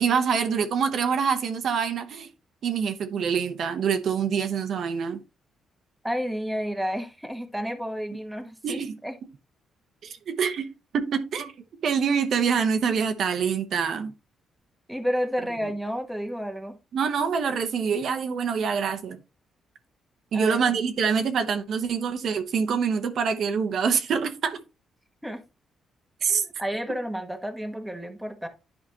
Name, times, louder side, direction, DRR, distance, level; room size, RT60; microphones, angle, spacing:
voice 1, 0.0-2.3 2.6-5.2 8.6-9.0 10.0-11.5 11.8-14.1 15.6-15.7 16.9-19.2 20.3-24.6 26.2-26.4, right 6 dB, 65° right, 1.0 m, -25 dB
voice 2, 6.0-9.1 14.9-16.8 20.3-20.8 25.2-25.4 26.3-28.5, equal, 5° right, 1.2 m, -31 dB
11.0 x 5.0 x 2.9 m
cardioid pair, 110°, 0 cm